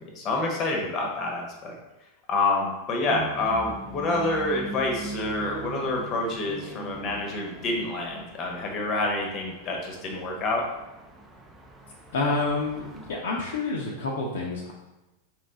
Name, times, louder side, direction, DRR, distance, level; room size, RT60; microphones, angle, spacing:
voice 1, 0.1-1.8 2.3-10.6, left 2 dB, 35° left, 0 dB, 0.9 m, -27 dB
sound 1, 3.1-13.1, right 3 dB, 10° right, 0.5 m, -42 dB
voice 2, 12.1-14.7, left 3 dB, 60° left, -2 dB, 0.6 m, -28 dB
3.4 x 3.2 x 3.9 m, 1.0 s
figure-of-eight pair, 90°, 0 cm